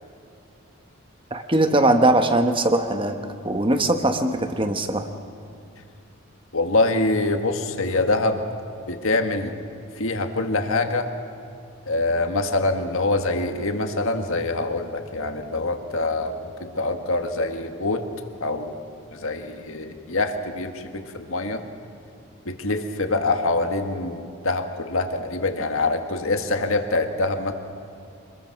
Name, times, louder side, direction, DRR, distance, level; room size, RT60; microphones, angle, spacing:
voice 1, 1.3-3.2 3.4-5.1, right 1 dB, 25° right, 7 dB, 1.2 m, -20 dB
voice 2, 6.5-8.4 8.9-9.5 10.0-11.1 11.9-18.1 18.4-18.7 19.1-21.6 22.4-27.5, left 2 dB, 70° left, 6 dB, 1.7 m, -25 dB
26.0 x 21.0 x 6.0 m, 2.6 s
head